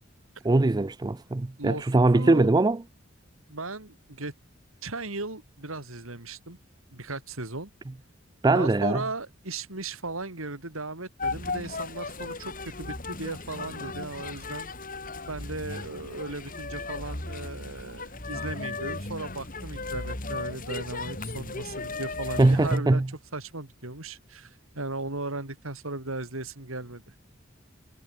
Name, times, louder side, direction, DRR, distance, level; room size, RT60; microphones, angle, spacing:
voice 1, 0.4-2.8 8.4-9.0 22.4-23.1, right 2 dB, 20° right, 0.4 m, -21 dB
voice 2, 2.1-2.5 3.5-4.3 4.8-6.6 6.9-7.7 8.5-14.7 15.3-23.0 23.3-27.0, right 2 dB, 80° right, 4.0 m, -36 dB
sound 1, 11.2-22.8, left 3 dB, 40° left, 6.1 m, -36 dB
head